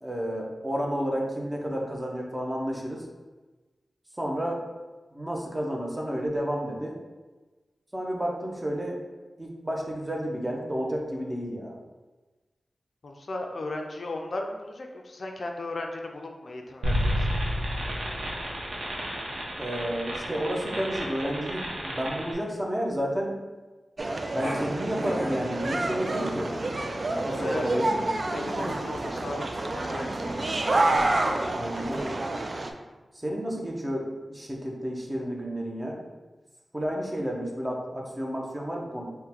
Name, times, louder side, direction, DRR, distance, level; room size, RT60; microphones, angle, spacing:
voice 1, 0.0-3.1 4.2-4.6 5.1-7.0 7.9-9.0 9.4-11.8 19.6-23.4 24.3-26.5 27.2-28.1 31.5-32.1 33.1-36.0 36.7-39.0, equal, 15° right, -1 dB, 0.7 m, -31 dB
voice 2, 13.0-17.3 26.9-27.7 28.3-30.3 30.9-31.6, left 2 dB, 60° left, 2 dB, 0.4 m, -36 dB
sound 1, 16.8-22.3, equal, 85° right, 0.8 m, -31 dB
sound 2, 24.0-32.7, right 2 dB, 45° right, 0.3 m, -28 dB
Growling, 24.4-32.0, equal, 65° right, 1.1 m, -38 dB
3.7 x 2.2 x 4.3 m, 1.2 s
wide cardioid pair, 90°, 0 cm